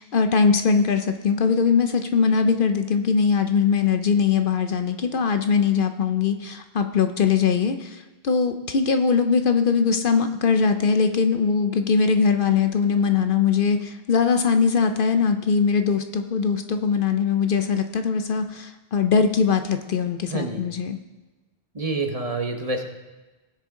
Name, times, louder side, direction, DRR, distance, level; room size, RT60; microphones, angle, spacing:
voice 1, 0.0-21.0, left 5 dB, 60° left, 7 dB, 0.8 m, -21 dB
voice 2, 20.3-20.6 21.7-22.9, right 3 dB, 35° right, 4 dB, 1.1 m, -27 dB
19.0 x 6.6 x 3.7 m, 1.1 s
omnidirectional pair, 1.1 m